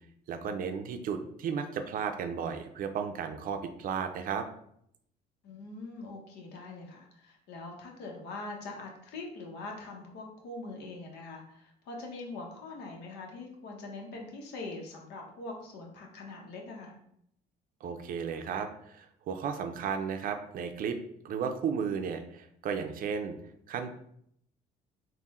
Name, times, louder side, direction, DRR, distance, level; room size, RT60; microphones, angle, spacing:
voice 1, 0.3-4.5 17.8-21.0 21.2-23.4 23.7-23.9, right 6 dB, 55° right, 7 dB, 0.5 m, -34 dB
voice 2, 5.4-17.0, left 3 dB, 80° left, 0 dB, 0.9 m, -43 dB
3.6 x 2.2 x 4.1 m, 0.72 s
cardioid pair, 110°, 17 cm